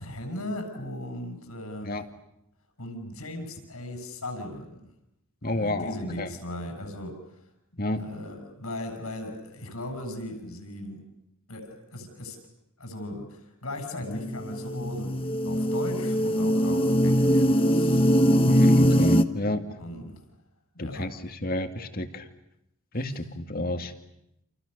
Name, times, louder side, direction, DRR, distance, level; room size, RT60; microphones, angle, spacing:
voice 1, 0.0-2.0 2.8-4.8 5.5-7.4 8.0-11.0 11.5-12.4 12.8-18.8 19.8-20.2 20.7-21.0, left 1 dB, 80° left, 6 dB, 7.7 m, -38 dB
voice 2, 5.4-6.4 7.8-8.0 14.1-14.2 18.5-19.6 20.8-21.2 21.4-22.2 22.9-23.9, left 1 dB, 45° left, 7 dB, 2.3 m, -31 dB
sound 1, 14.2-19.2, equal, 25° left, 1.2 m, -21 dB
30.0 x 28.5 x 6.8 m, 0.82 s
head